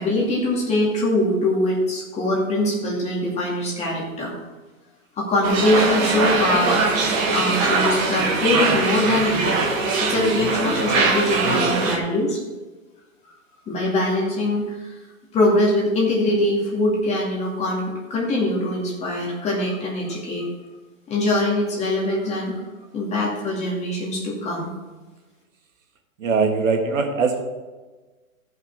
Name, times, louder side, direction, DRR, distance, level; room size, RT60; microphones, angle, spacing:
voice 1, 0.0-4.3 5.2-6.8 7.3-9.7 10.0-12.4 13.7-14.9 15.3-20.5 21.1-22.6 22.9-24.7, left 1 dB, 15° left, -3 dB, 2.3 m, -22 dB
sound 1, 5.4-12.0, right 3 dB, 10° right, 0.4 m, -21 dB
voice 2, 26.2-27.4, right 4 dB, 65° right, 4 dB, 1.7 m, -21 dB
14.5 x 5.8 x 4.6 m, 1.3 s
hypercardioid pair, 145°, 41 cm